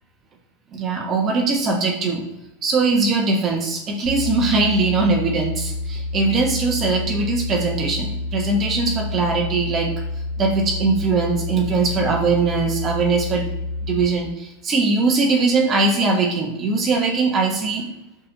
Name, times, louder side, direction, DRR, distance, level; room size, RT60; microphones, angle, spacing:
voice 1, 0.7-2.2 2.6-10.0 10.4-13.5 13.8-17.9, right 3 dB, 30° right, 1 dB, 1.2 m, -21 dB
sound 1, 4.0-14.1, left 2 dB, 50° left, 2.4 m, -28 dB
5.3 x 4.3 x 5.4 m, 0.98 s
hypercardioid pair, 110°, 0 cm